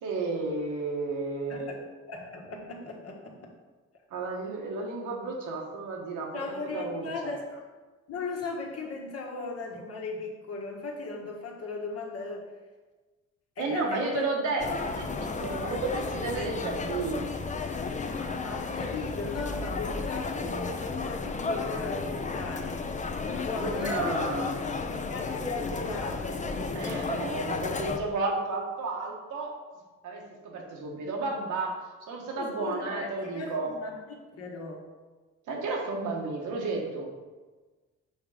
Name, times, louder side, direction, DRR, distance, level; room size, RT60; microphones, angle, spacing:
voice 1, 0.0-1.7 4.1-6.3 6.7-7.3 13.6-17.3 23.6-24.6 26.7-29.6 30.0-31.8 32.1-33.7 35.5-37.1, right 3 dB, 85° right, -1 dB, 1.4 m, -32 dB
voice 2, 1.5-1.8 2.1-3.5 6.3-7.6 8.1-12.5 13.6-14.3 18.2-24.2 25.1-27.1 32.4-34.9, left 3 dB, 55° left, -1 dB, 1.5 m, -37 dB
sound 1, 14.6-28.0, left 4 dB, 25° left, 0.6 m, -33 dB
6.3 x 3.7 x 4.9 m, 1.3 s
cardioid pair, 90°, 30 cm